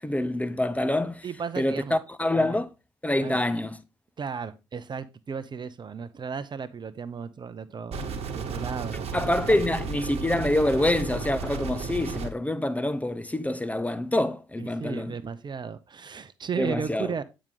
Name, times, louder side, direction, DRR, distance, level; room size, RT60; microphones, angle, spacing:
voice 1, 0.0-1.3 1.6-2.7 3.0-3.8 9.1-15.2 16.6-17.1, left 1 dB, 10° left, 0.8 m, -26 dB
voice 2, 1.2-2.0 2.3-2.6 3.2-3.4 4.2-9.7 14.6-17.2, right 6 dB, 40° right, 0.8 m, -35 dB
sound 1, 7.9-12.3, right 4 dB, 60° right, 1.3 m, -33 dB
8.8 x 5.1 x 3.9 m
hypercardioid pair, 50°, 12 cm